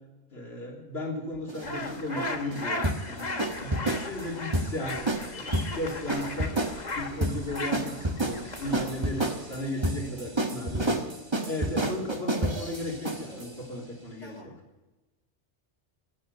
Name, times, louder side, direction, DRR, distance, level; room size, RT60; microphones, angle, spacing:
voice 1, 0.3-3.3 3.6-6.6 6.9-11.0 11.5-14.4, left 1 dB, 65° left, -2 dB, 3.6 m, -35 dB
sound 1, 1.5-13.5, right 1 dB, 25° right, 1.3 m, -30 dB
sound 2, 1.6-9.7, left 2 dB, 40° left, 1.3 m, -37 dB
voice 2, 9.7-10.4 13.3-13.5 14.2-14.5, left 1 dB, 85° left, -3 dB, 2.8 m, -50 dB
15.5 x 9.1 x 9.4 m, 1.1 s
omnidirectional pair, 1.2 m